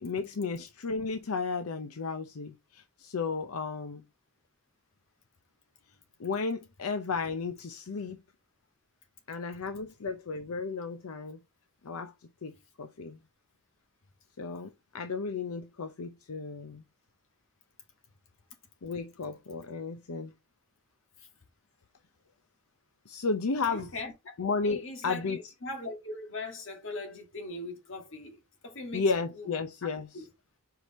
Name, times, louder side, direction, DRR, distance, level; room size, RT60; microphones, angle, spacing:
voice 1, 0.0-4.0 6.2-8.2 9.3-11.4 11.8-12.1 12.4-12.5 12.8-13.2 14.4-16.8 18.8-20.3 23.1-23.9 24.4-25.4 28.9-30.3, left 4 dB, 80° left, 0.6 m, -33 dB
voice 2, 23.7-24.3 24.6-29.0 29.4-29.5 30.1-30.3, left 2 dB, 60° left, 1.8 m, -40 dB
5.1 x 4.7 x 4.1 m
head